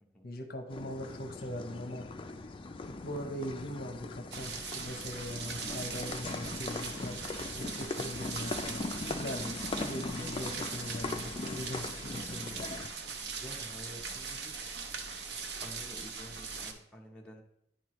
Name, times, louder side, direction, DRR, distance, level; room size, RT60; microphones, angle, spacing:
voice 1, 0.2-2.1 2.8-12.6, equal, 55° left, 6 dB, 0.7 m, -41 dB
sound 1, 0.7-12.9, left 3 dB, 30° left, 0.3 m, -40 dB
sound 2, 4.3-16.7, right 5 dB, 65° right, 0.7 m, -40 dB
voice 2, 13.3-14.7 15.6-17.4, equal, 5° left, -2 dB, 0.7 m, -50 dB
10.0 x 4.6 x 3.0 m, 0.79 s
head